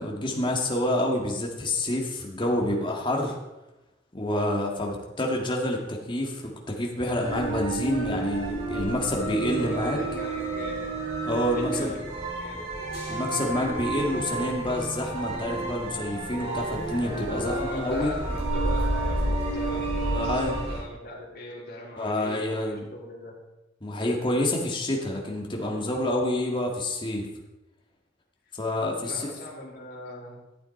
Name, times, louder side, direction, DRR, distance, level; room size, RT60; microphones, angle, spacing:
voice 1, 0.0-3.4 4.1-10.0 11.2-11.9 13.1-18.1 20.1-20.6 22.0-22.8 23.8-27.3 28.5-29.3, left 1 dB, 25° left, 0 dB, 1.8 m, -28 dB
sound 1, 7.2-20.8, right 2 dB, 35° right, 4.4 m, -30 dB
voice 2, 9.5-10.9 11.5-12.0 12.4-13.0 17.3-23.3 29.0-30.4, left 1 dB, 55° left, -6 dB, 3.0 m, -40 dB
13.0 x 8.4 x 4.2 m, 1.0 s
head